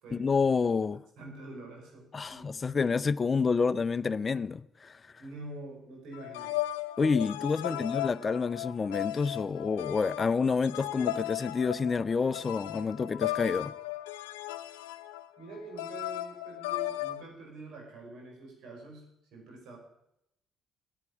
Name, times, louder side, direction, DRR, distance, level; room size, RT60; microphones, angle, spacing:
voice 1, 0.1-1.0 2.1-5.0 7.0-13.7, left 5 dB, 40° left, 0.5 m, -28 dB
voice 2, 1.2-2.6 5.2-6.5 7.6-7.8 15.4-19.8, right 2 dB, 75° right, 5.3 m, -46 dB
sound 1, 6.1-17.2, left 15 dB, 90° left, 0.6 m, -36 dB
10.0 x 9.6 x 9.6 m
hypercardioid pair, 55°, 0 cm